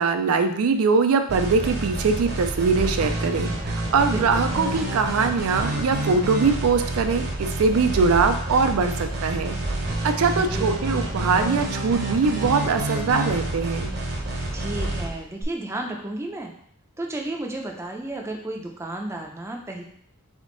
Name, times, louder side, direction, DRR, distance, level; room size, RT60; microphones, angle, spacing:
voice 1, 0.0-9.6 10.0-13.9, right 4 dB, 70° right, 7 dB, 0.4 m, -22 dB
sound 1, 1.3-15.4, right 1 dB, 50° right, 0.8 m, -28 dB
voice 2, 4.1-4.5 10.3-10.7 14.5-16.5 17.0-19.8, right 1 dB, 10° right, 1 dB, 0.5 m, -32 dB
3.6 x 3.6 x 3.8 m, 0.66 s
head